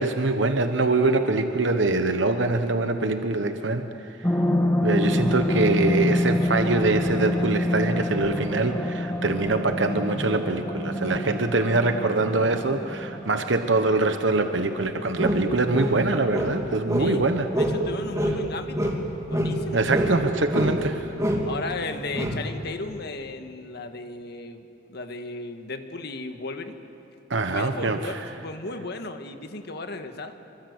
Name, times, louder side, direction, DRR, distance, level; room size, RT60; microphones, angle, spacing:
voice 1, 0.0-3.9 4.2-4.3 4.8-17.5 19.7-21.0 27.3-28.2, right 3 dB, 70° right, 7 dB, 1.1 m, -24 dB
sound 1, 4.2-15.1 15.5-15.6, left 1 dB, 15° left, 1.6 m, -26 dB
sound 2, 15.2-17.2 17.5-17.9 18.1-20.2 20.5-20.9 21.2-21.5 22.1-22.5, equal, 15° right, 2.8 m, -26 dB
voice 2, 17.6-19.0 19.3-19.9 21.5-26.8 27.5-30.4, left 3 dB, 60° left, 7 dB, 1.7 m, -35 dB
26.5 x 24.0 x 8.1 m, 2.7 s
head